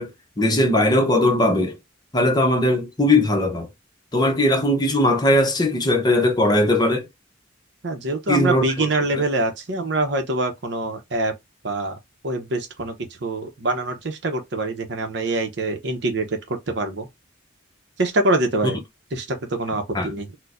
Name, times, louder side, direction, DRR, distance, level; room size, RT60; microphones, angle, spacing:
voice 1, 0.0-1.8 2.1-3.7 4.1-7.1 8.3-8.6 8.9-9.2 19.9-20.1, left 1 dB, 20° left, 0.7 m, -19 dB
voice 2, 7.8-11.3 11.6-12.0 12.2-12.9 13.2-17.1 18.0-18.8 19.1-20.3, right 2 dB, 60° right, 0.7 m, -24 dB
4.4 x 2.1 x 2.4 m
head